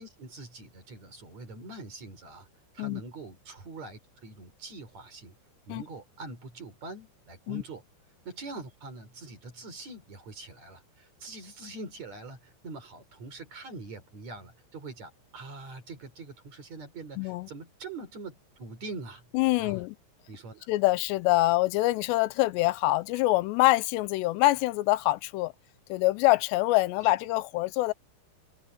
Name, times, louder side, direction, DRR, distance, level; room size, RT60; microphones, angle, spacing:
voice 1, 0.0-2.5 2.7-5.3 5.7-7.8 8.2-19.2 19.6-19.8 20.3-20.7, right 3 dB, 40° right, 5.0 m, -43 dB
voice 2, 17.2-17.5 19.3-20.0 20.7-25.5 25.9-27.9, left 18 dB, 90° left, 2.8 m, -25 dB
open air
omnidirectional pair, 5.0 m